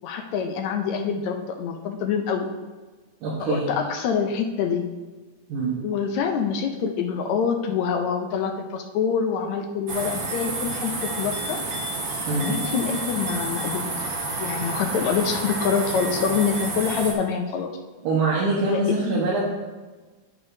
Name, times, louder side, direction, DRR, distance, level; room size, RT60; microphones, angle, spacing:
voice 1, 0.0-2.5 3.4-4.9 5.8-11.6 12.4-13.9 14.4-17.7 18.7-19.2, left 6 dB, 75° left, 4 dB, 1.9 m, -26 dB
voice 2, 3.2-3.7 5.5-5.7 12.3-12.5 18.0-19.4, right 3 dB, 85° right, -6 dB, 2.8 m, -24 dB
sound 1, 9.9-17.1, right 2 dB, 50° right, 1.7 m, -30 dB
9.6 x 8.7 x 2.7 m, 1.3 s
omnidirectional pair, 3.4 m